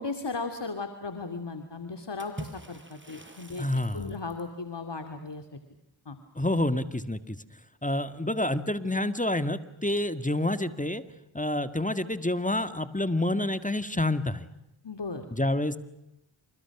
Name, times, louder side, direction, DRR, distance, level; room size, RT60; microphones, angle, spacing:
voice 1, 0.0-3.6 3.9-5.6 6.1-6.2 14.8-15.2, left 4 dB, 60° left, 6 dB, 2.6 m, -36 dB
Water / Splash splatter, 2.2-4.6, right 1 dB, 25° right, 6.2 m, -45 dB
voice 2, 3.6-4.1 6.4-7.4 7.8-11.0 11.3-14.5 15.3-15.8, left 1 dB, 15° left, 11 dB, 1.9 m, -28 dB
28.5 x 28.5 x 6.1 m, 0.87 s
cardioid pair, 40°, 47 cm